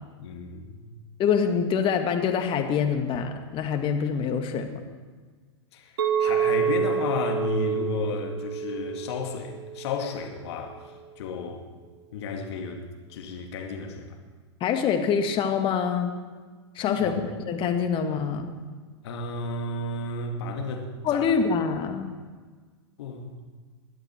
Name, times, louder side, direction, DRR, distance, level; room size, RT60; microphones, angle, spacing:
voice 1, 0.2-0.8 5.7-5.9 6.2-10.8 11.2-11.6 12.1-12.8 13.1-14.1 16.8-17.1 19.0-21.2 23.0-23.3, left 3 dB, 65° left, 3 dB, 2.3 m, -32 dB
voice 2, 1.2-4.8 14.6-16.1 16.8-17.1 17.5-18.5 21.0-22.1, left 6 dB, 35° left, 5 dB, 2.0 m, -25 dB
Chink clink, 6.0-10.2, right 7 dB, 70° right, 1.9 m, -28 dB
21.0 x 11.5 x 4.5 m, 1.5 s
hypercardioid pair, 105°, 15 cm